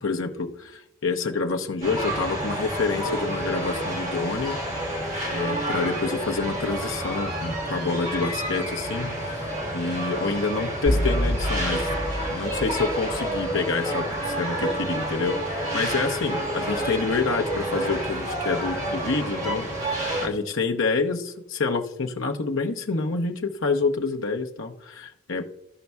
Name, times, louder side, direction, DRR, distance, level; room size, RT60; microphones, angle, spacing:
voice 1, 0.0-4.8 5.3-9.5 9.7-11.9 12.3-19.7 20.2-25.5, left 4 dB, 70° left, 4 dB, 0.9 m, -27 dB
sound 1, 1.8-20.3, right 1 dB, 35° right, 1.7 m, -29 dB
sound 2, 10.9-13.7, equal, 45° left, 1.2 m, -27 dB
15.0 x 5.3 x 2.3 m, 0.80 s
head